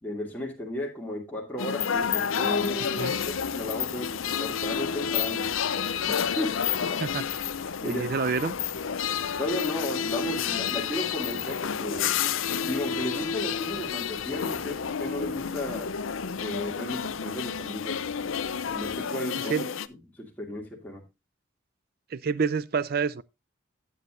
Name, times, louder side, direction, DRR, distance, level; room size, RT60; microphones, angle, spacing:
voice 1, 0.0-5.5 6.1-6.6 6.9-7.0 7.8-8.3 9.4-12.2 12.6-15.9 16.4-18.0 18.7-19.5 19.9-21.0, left 1 dB, 10° left, 2.3 m, -34 dB
sound 1, 1.6-19.9, left 7 dB, 80° left, 0.6 m, -30 dB
sound 2, 1.9-19.0, right 1 dB, 30° right, 3.4 m, -54 dB
voice 2, 7.9-8.5 19.4-19.7 22.1-23.2, right 5 dB, 50° right, 0.4 m, -28 dB
12.5 x 8.6 x 2.5 m
head